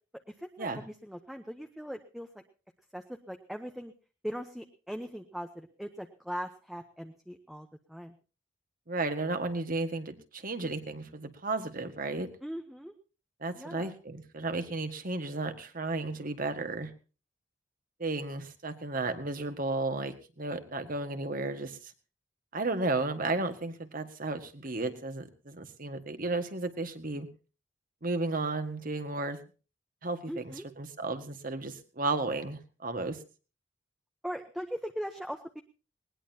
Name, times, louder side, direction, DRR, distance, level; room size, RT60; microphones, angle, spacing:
voice 1, 0.9-2.3 2.9-3.9 4.2-8.1 12.4-12.9 13.6-13.9 30.3-30.6 34.2-35.6, equal, ahead, 5 dB, 0.9 m, -40 dB
voice 2, 8.9-12.3 13.4-16.9 18.0-21.9 22.5-27.3 28.0-29.4 30.0-33.2, right 2 dB, 50° right, 8 dB, 1.8 m, -33 dB
20.0 x 19.0 x 2.9 m, 0.35 s
head